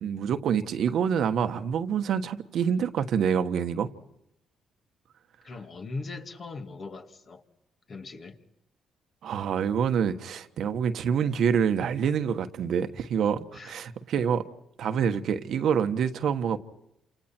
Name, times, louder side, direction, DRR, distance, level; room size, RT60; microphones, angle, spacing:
voice 1, 0.0-3.9 9.2-14.4 14.8-16.6, right 7 dB, 70° right, 1.4 m, -26 dB
voice 2, 5.4-7.4 7.9-8.4 13.5-13.8, left 3 dB, 45° left, 2.6 m, -39 dB
29.0 x 28.0 x 4.5 m
cardioid pair, 90°, 0 cm